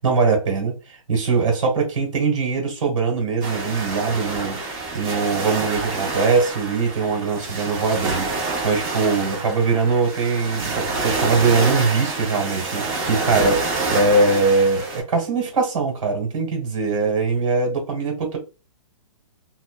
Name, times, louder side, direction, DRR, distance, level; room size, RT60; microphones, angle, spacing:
voice 1, 0.0-4.6 4.9-8.3 8.6-18.4, right 4 dB, 70° right, 1.3 m, -21 dB
sound 1, 3.4-15.0, right 3 dB, 30° right, 0.8 m, -27 dB
2.5 x 2.1 x 2.2 m
hypercardioid pair, 150°, 17 cm